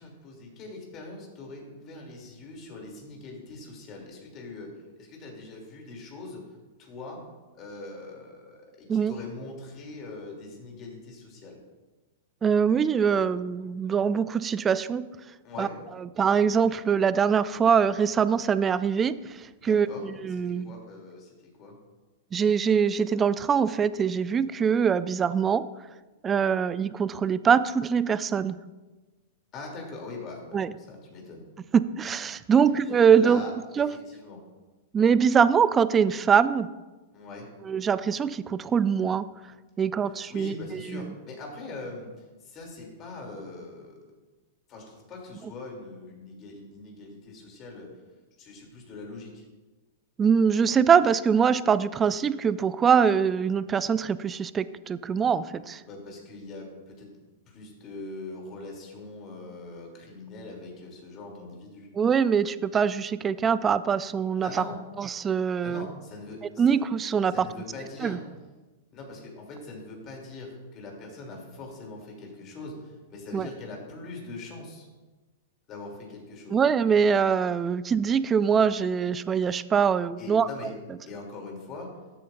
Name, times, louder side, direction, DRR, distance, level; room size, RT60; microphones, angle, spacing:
voice 1, 0.0-4.7 5.0-6.4 6.8-7.2 7.6-11.6 15.4-15.7 19.6-21.8 29.5-31.4 32.4-32.6 33.1-33.5 33.8-34.4 37.1-37.5 40.3-42.1 42.4-44.0 44.7-47.9 48.4-49.4 55.8-57.1 57.5-61.9 64.4-64.8 65.6-66.7 67.3-68.2 68.9-74.9 75.7-76.6 80.2-80.7 81.1-81.9, left 3 dB, 35° left, 0 dB, 2.9 m, -42 dB
voice 2, 12.4-15.1 15.6-15.7 16.2-19.2 19.6-20.7 22.3-25.7 26.2-28.6 30.5-30.7 31.7-33.4 33.8-33.9 34.9-36.7 37.7-39.3 39.8-40.5 40.9-41.1 50.2-55.8 61.9-64.6 65.0-65.9 66.6-67.5 68.0-68.2 73.3-73.5 76.5-80.5, right 7 dB, 20° right, 16 dB, 0.3 m, -23 dB
12.5 x 7.7 x 2.6 m, 1.2 s
hypercardioid pair, 120°, 0 cm